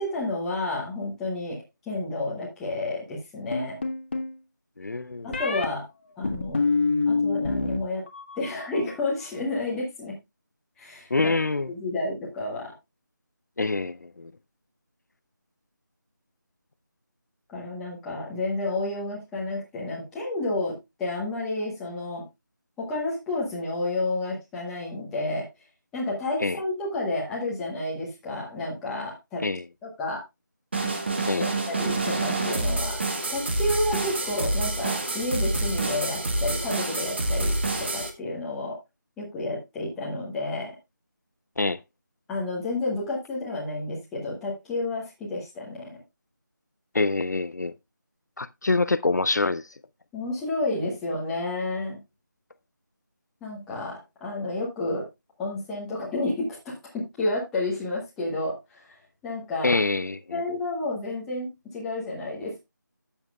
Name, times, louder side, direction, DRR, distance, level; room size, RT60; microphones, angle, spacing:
voice 1, 0.0-1.6 1.9-3.8 5.2-5.9 6.2-6.6 7.1-8.0 8.4-10.2 10.8-11.3 11.7-12.7 17.5-22.2 22.8-25.5 25.9-29.4 29.8-30.2 31.4-33.0 33.3-37.5 37.8-38.8 39.2-40.8 42.3-46.0 50.1-52.0 53.4-55.1 55.4-58.8 59.2-59.8 60.3-62.6, left 2 dB, 5° left, 0.9 m, -30 dB
sound 1, 3.5-4.3 5.3-5.7 6.2-7.8 8.1-8.6, left 3 dB, 30° left, 1.2 m, -26 dB
voice 2, 4.8-5.3 11.1-11.7 13.6-14.3 26.4-26.6 29.4-29.6 31.3-31.5 41.6-41.8 46.9-47.7 48.4-49.6 59.6-60.4, left 3 dB, 60° left, 0.5 m, -25 dB
sound 2, 30.7-38.1, right 2 dB, 35° right, 1.3 m, -27 dB
12.0 x 7.2 x 2.3 m
figure-of-eight pair, 175°, 11 cm